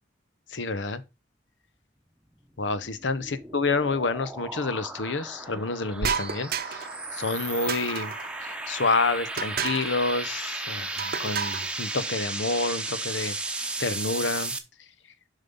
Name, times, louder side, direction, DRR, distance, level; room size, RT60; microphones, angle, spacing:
voice 1, 0.5-1.0 2.6-6.9 7.1-8.1 8.4-13.4 13.8-14.5, left 3 dB, 85° left, 0.9 m, -28 dB
sound 1, 2.8-14.6, right 2 dB, 5° right, 0.9 m, -35 dB
sound 2, 6.0-7.0 7.7-8.3 9.4-10.0 11.0-11.7, right 6 dB, 55° right, 0.7 m, -31 dB
7.3 x 5.6 x 5.4 m
head